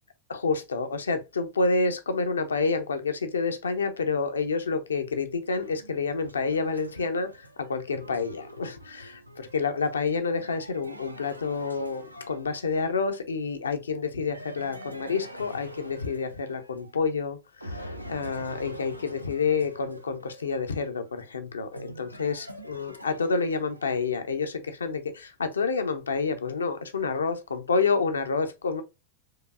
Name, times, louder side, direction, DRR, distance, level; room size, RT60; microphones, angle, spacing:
voice 1, 0.3-28.8, left 4 dB, 70° left, 0.5 m, -29 dB
sound 1, 5.6-13.0 14.3-17.2 17.6-24.1, equal, 90° right, 0.4 m, -45 dB
4.7 x 2.5 x 2.3 m
figure-of-eight pair, 90°, 0 cm